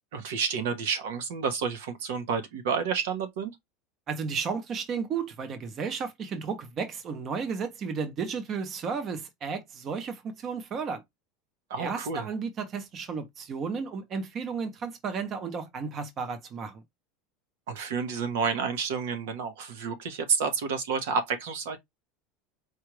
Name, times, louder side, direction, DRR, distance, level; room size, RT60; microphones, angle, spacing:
voice 1, 0.1-3.5 11.7-12.3 17.7-21.8, right 6 dB, 90° right, 1.1 m, -30 dB
voice 2, 4.1-11.0 11.8-16.8, right 5 dB, 30° right, 0.7 m, -33 dB
4.5 x 2.4 x 3.1 m
supercardioid pair, 165°, 0 cm